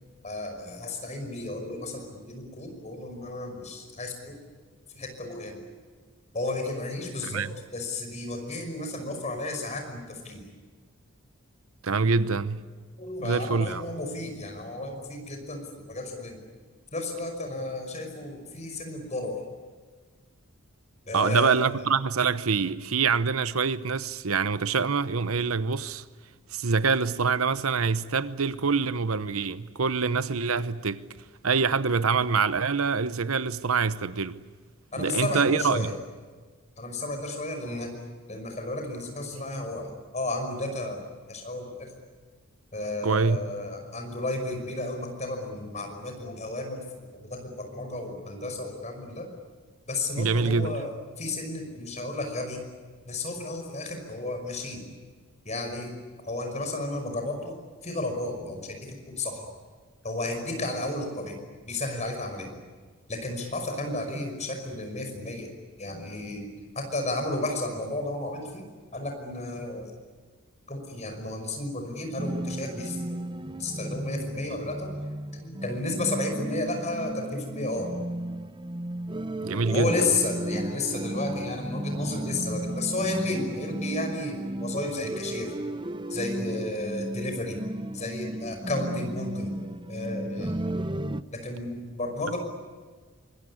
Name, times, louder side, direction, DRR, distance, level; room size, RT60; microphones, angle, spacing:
voice 1, 0.2-4.3 4.9-5.6 6.3-7.4 7.7-10.5 13.0-16.4 16.9-19.4 21.1-21.7 34.9-35.9 36.8-37.9 38.3-41.0 41.3-41.9 42.7-46.8 47.2-49.3 49.9-50.9 51.2-52.6 53.1-54.9 55.5-55.9 56.3-57.6 57.8-59.5 60.0-61.4 61.7-62.6 63.1-65.5 65.8-66.5 66.8-68.6 68.9-69.9 70.7-73.0 73.6-74.9 75.3-77.9 79.7-85.5 86.1-87.6 87.9-90.5 91.3-92.4, left 2 dB, 35° left, 5.6 m, -33 dB
voice 2, 7.2-7.6 11.8-12.6 13.2-13.8 21.1-26.0 26.5-31.0 31.4-34.4 35.0-35.9 39.3-39.4 43.0-43.4 50.2-50.8 79.4-79.9, right 5 dB, 80° right, 0.9 m, -25 dB
sound 1, 72.2-91.2, right 1 dB, 20° right, 0.7 m, -34 dB
25.0 x 22.0 x 9.9 m
head